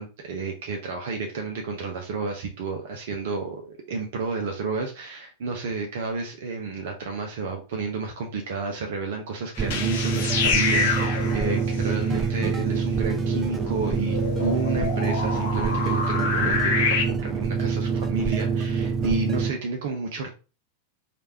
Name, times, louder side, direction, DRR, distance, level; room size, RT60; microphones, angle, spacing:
voice 1, 0.0-20.3, right 4 dB, 55° right, 0.7 m, -31 dB
sound 1, 9.6-17.0, left 5 dB, 55° left, 0.7 m, -28 dB
sound 2, 9.6-19.5, right 5 dB, 20° right, 0.4 m, -26 dB
3.3 x 2.5 x 4.3 m
figure-of-eight pair, 90°, 0 cm